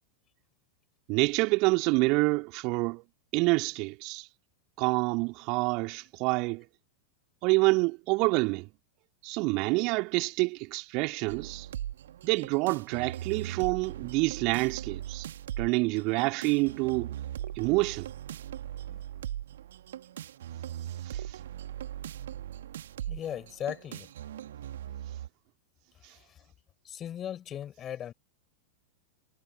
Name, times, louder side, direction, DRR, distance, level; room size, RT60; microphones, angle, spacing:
voice 1, 1.1-3.0 3.3-4.3 4.8-6.6 7.4-8.7 9.2-11.7 12.2-15.3 15.6-17.1 17.6-18.1 21.0-21.4 26.0-26.1, right 27 dB, 40° right, 2.6 m, -27 dB
sound 1, 11.3-25.3, right 11 dB, 60° right, 1.8 m, -40 dB
voice 2, 23.1-24.1 26.1-26.4 26.8-28.1, left 10 dB, 25° left, 4.4 m, -38 dB
figure-of-eight pair, 90°, 0 cm